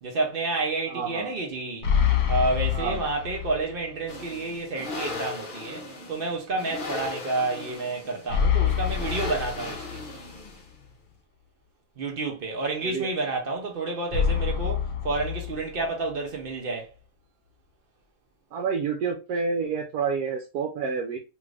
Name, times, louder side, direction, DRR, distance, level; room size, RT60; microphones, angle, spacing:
voice 1, 0.0-1.9 2.3-10.0 12.0-16.9, right 3 dB, 60° right, 0.6 m, -30 dB
voice 2, 0.9-1.3 2.7-3.0 12.8-13.1 18.5-21.2, right 5 dB, 75° right, 1.1 m, -29 dB
sound 1, 1.8-3.8 4.2-4.3 8.3-10.3 14.1-16.1, left 8 dB, 75° left, 1.1 m, -26 dB
sound 2, 4.1-10.8, left 3 dB, 45° left, 0.7 m, -37 dB
3.0 x 2.4 x 3.2 m
omnidirectional pair, 1.7 m